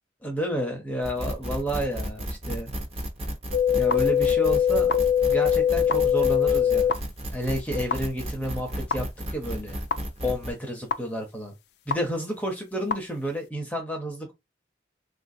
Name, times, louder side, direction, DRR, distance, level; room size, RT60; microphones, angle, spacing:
voice 1, 0.2-2.7 3.7-4.9 5.3-6.9 7.3-9.8 10.2-11.5 11.9-14.3, equal, 10° left, 0.6 m, -30 dB
sound 1, 1.0-10.5, equal, 35° right, 0.7 m, -33 dB
sound 2, 3.5-6.9 7.9-8.0 8.9-9.0 9.9-10.0 10.9-11.0 11.9-12.0 12.9-13.0, left 9 dB, 60° left, 0.3 m, -21 dB
3.5 x 2.4 x 2.6 m
head